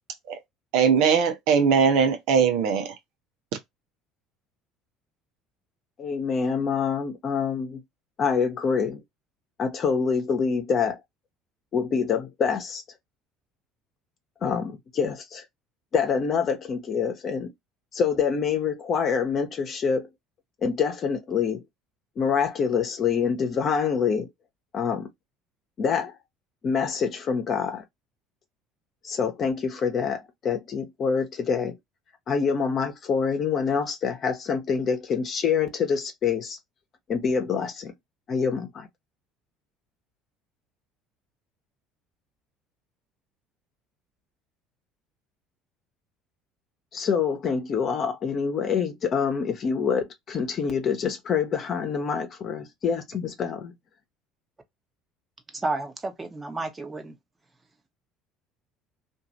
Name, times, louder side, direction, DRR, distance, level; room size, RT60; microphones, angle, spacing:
voice 1, 0.7-2.9, right 6 dB, 70° right, 0.7 m, -20 dB
voice 2, 6.0-7.8 8.2-9.0 9.6-11.0 11.7-12.8 14.4-15.5 15.9-17.5 17.9-20.1 20.6-21.6 22.2-24.3 24.7-25.1 25.8-26.2 26.6-27.8 29.0-31.8 32.3-36.6 37.1-37.9 38.3-38.9 46.9-53.8, left 6 dB, 45° left, 1.0 m, -26 dB
voice 3, 55.5-57.1, right 2 dB, 20° right, 1.0 m, -31 dB
2.6 x 2.5 x 3.0 m
hypercardioid pair, 70°, 0 cm